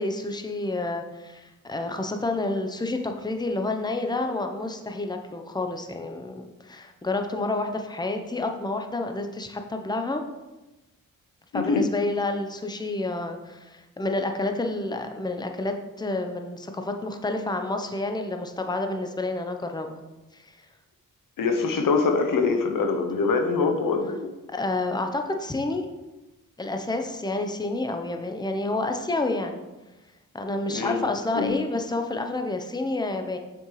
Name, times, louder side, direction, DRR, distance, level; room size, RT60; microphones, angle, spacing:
voice 1, 0.0-10.2 11.5-20.0 20.3-20.6 24.5-25.8 26.6-29.6 30.3-33.4, left 2 dB, 10° left, 5 dB, 0.8 m, -29 dB
voice 2, 11.5-11.9 21.4-24.3 30.7-31.0 31.3-31.5, left 4 dB, 70° left, 5 dB, 0.9 m, -24 dB
6.4 x 5.4 x 3.2 m, 1.1 s
supercardioid pair, 50°, 34 cm